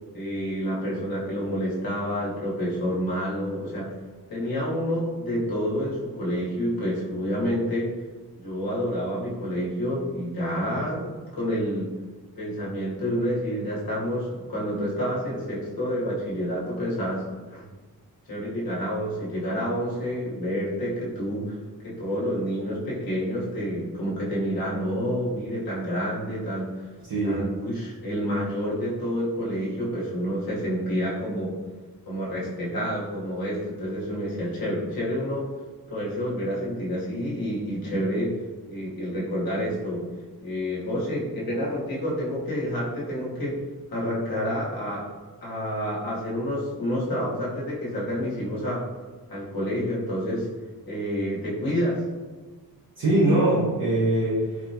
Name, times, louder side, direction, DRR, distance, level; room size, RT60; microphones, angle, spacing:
voice 1, 0.1-3.9 4.3-7.9 8.4-11.9 12.4-17.2 17.5-17.6 18.3-21.5 21.8-26.8 27.2-31.5 32.1-35.5 35.9-38.4 38.7-40.0 40.4-43.6 43.9-45.1 45.4-48.8 49.3-50.5 50.9-52.0, equal, 70° left, -6 dB, 1.2 m, -28 dB
voice 2, 27.1-27.4 53.0-54.7, right 1 dB, 60° right, -8 dB, 0.8 m, -22 dB
4.1 x 2.2 x 2.7 m, 1.4 s
wide cardioid pair, 150°, 36 cm